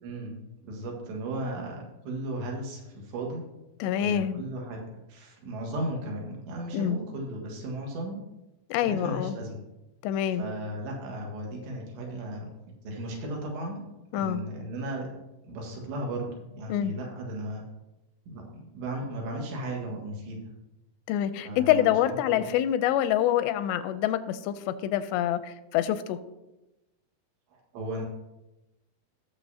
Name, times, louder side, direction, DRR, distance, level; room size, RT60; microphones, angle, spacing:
voice 1, 0.0-0.4 0.6-3.4 4.0-4.8 5.1-8.2 8.8-9.6 10.4-12.5 12.8-13.8 14.1-15.1 15.4-17.7 18.3-20.4 21.4-22.5 27.5-28.0, right 1 dB, 85° right, 0 dB, 3.9 m, -35 dB
voice 2, 3.8-4.4 6.7-7.0 8.7-9.4 10.0-10.4 14.1-14.4 16.7-16.9 21.1-26.2, left 11 dB, 85° left, 12 dB, 2.7 m, -26 dB
17.5 x 6.7 x 2.8 m, 0.99 s
omnidirectional pair, 4.8 m